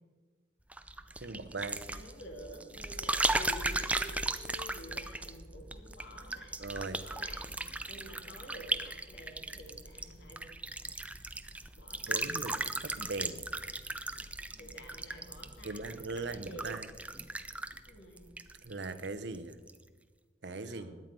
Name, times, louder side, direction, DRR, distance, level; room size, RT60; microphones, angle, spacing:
sound 1, 0.7-19.1 19.3-19.8, right 2 dB, 10° right, 0.5 m, -37 dB
voice 1, 1.2-1.8 6.6-7.0 12.1-13.4 15.6-16.9 18.6-19.6 20.4-21.0, right 3 dB, 75° right, 12 dB, 0.9 m, -40 dB
voice 2, 1.8-6.6 7.0-7.6 7.9-10.5 11.8-12.4 14.6-16.8 17.8-18.3 20.6-21.0, equal, 85° left, 3 dB, 2.1 m, -50 dB
17.0 x 10.5 x 5.3 m, 1.4 s
head